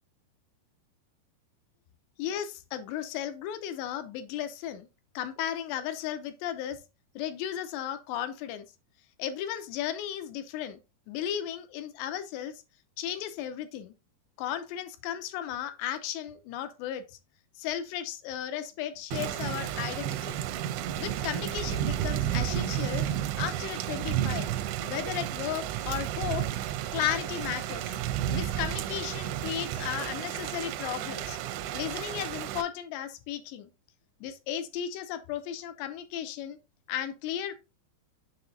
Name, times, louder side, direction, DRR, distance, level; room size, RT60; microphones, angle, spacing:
voice 1, 2.2-4.9 5.1-6.8 7.2-8.7 9.2-10.8 11.1-12.6 13.0-13.9 14.4-17.1 17.6-20.4 21.0-23.1 23.3-24.5 24.8-26.5 26.9-27.9 28.3-31.4 31.7-33.7 34.2-36.6 36.9-37.5, left 10 dB, 80° left, 2.8 m, -35 dB
Thunder / Rain, 19.1-32.6, right 11 dB, 90° right, 2.9 m, -32 dB
7.1 x 6.1 x 2.7 m
omnidirectional pair, 5.1 m